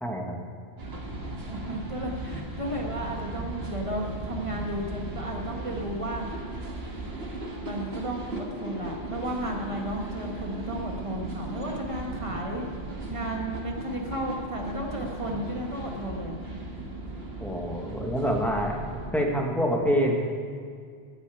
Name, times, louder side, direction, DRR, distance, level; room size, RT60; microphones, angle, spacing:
voice 1, 0.0-0.4 17.4-18.8 19.1-20.2, equal, ahead, 0 dB, 1.5 m, -26 dB
sound 1, 0.8-19.1, right 2 dB, 75° right, 1.8 m, -37 dB
voice 2, 1.4-6.3 7.6-12.6 13.1-16.4, right 1 dB, 30° right, 0 dB, 1.9 m, -33 dB
13.0 x 7.0 x 9.2 m, 2.1 s
omnidirectional pair, 1.0 m